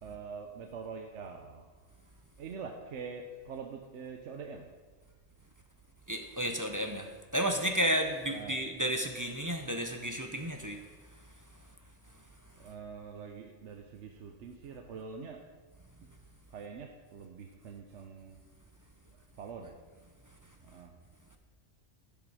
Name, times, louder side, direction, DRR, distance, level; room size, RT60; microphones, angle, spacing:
voice 1, 0.0-1.7 2.1-4.7 8.3-8.6 12.6-15.4 16.5-18.4 19.1-19.8 20.6-20.9, right 5 dB, 75° right, 3 dB, 1.1 m, -44 dB
voice 2, 6.1-7.1 7.3-10.8, equal, 20° right, 4 dB, 0.6 m, -32 dB
12.0 x 7.0 x 4.8 m, 1.4 s
omnidirectional pair, 1.2 m